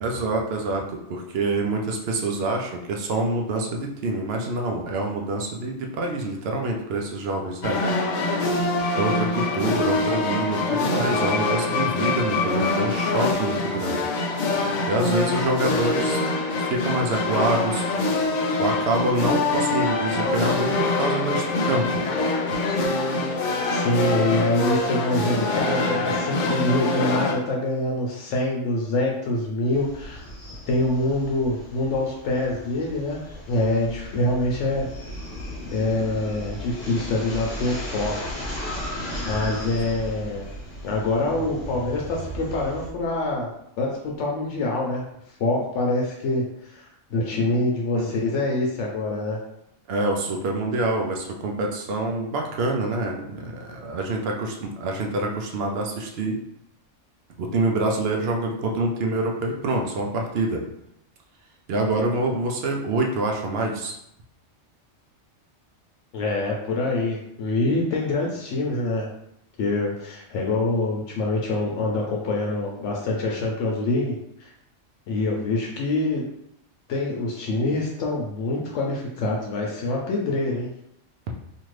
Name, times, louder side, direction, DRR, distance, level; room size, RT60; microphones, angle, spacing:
voice 1, 0.0-7.8 9.0-14.1 14.9-16.2 16.6-17.9 18.6-21.9 47.9-48.0 49.9-56.4 57.4-60.6 61.7-64.0, right 2 dB, 65° right, 1 dB, 0.7 m, -26 dB
sound 1, 7.6-27.3, left 2 dB, 60° left, 0.5 m, -24 dB
voice 2, 23.6-30.3 30.7-33.2 33.5-34.9 35.7-38.1 38.6-38.8 39.2-40.5 40.8-43.5 43.8-45.0 45.4-49.4 66.1-69.1 69.6-74.5 75.1-76.2 76.9-80.7, left 2 dB, 80° left, -2 dB, 0.9 m, -25 dB
sound 2, 29.7-42.9, left 1 dB, 40° left, 0.9 m, -36 dB
sound 3, 41.0-44.0, right 1 dB, 45° right, 1.0 m, -40 dB
2.7 x 2.5 x 3.1 m, 0.78 s
omnidirectional pair, 1.2 m